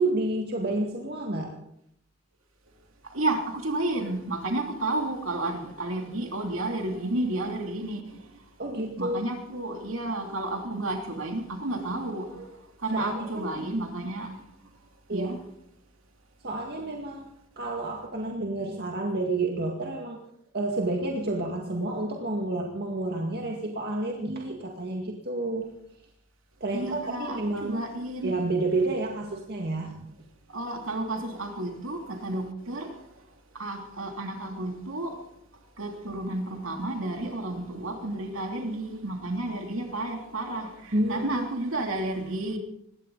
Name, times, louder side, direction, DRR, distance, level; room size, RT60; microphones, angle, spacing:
voice 1, 0.0-1.5 8.6-9.2 12.9-13.6 15.1-15.3 16.4-17.3 17.6-20.2 20.5-25.7 26.6-27.8 28.2-30.1 40.9-41.5, right 2 dB, 50° right, 2.1 m, -30 dB
voice 2, 3.1-8.2 9.0-12.5 12.8-14.3 15.1-15.4 26.7-28.3 30.5-32.9 33.5-35.1 35.8-42.6, right 2 dB, 65° right, 3.1 m, -31 dB
21.0 x 16.5 x 4.1 m
head